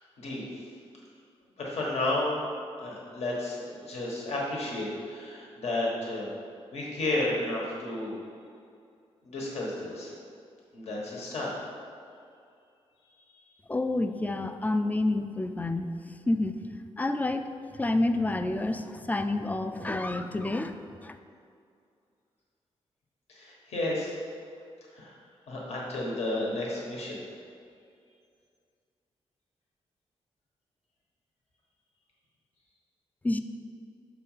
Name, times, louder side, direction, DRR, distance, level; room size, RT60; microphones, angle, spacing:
voice 1, 1.6-2.4 2.8-6.3 6.7-8.1 9.2-10.1 10.7-11.5 23.3-24.2 24.9-25.1 25.5-27.2, left 2 dB, 70° left, -4 dB, 1.4 m, -32 dB
voice 2, 13.7-16.6 17.0-21.2 33.2-33.4, left 2 dB, 15° left, 9 dB, 0.4 m, -29 dB
6.3 x 4.0 x 5.6 m, 2.4 s
cardioid pair, 95°, 11 cm